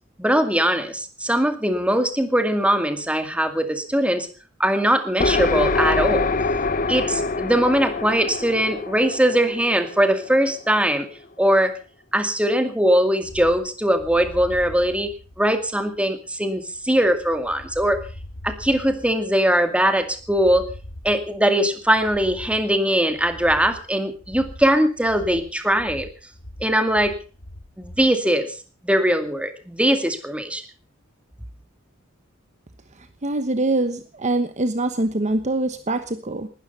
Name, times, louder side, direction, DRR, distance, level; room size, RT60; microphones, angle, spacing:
voice 1, 0.2-4.3 4.6-6.3 6.9-11.1 11.4-11.7 12.1-15.1 15.4-18.0 18.4-20.6 21.0-26.1 26.6-27.2 27.8-28.5 28.8-30.6, right 1 dB, 5° right, 7 dB, 2.2 m, -21 dB
sound 1, 5.2-10.8, left 3 dB, 45° left, 1.0 m, -25 dB
sound 2, 13.2-28.1, left 1 dB, 85° left, 3.7 m, -41 dB
voice 2, 33.2-36.5, right 2 dB, 35° right, 10 dB, 1.1 m, -24 dB
19.5 x 13.0 x 5.5 m, 0.38 s
head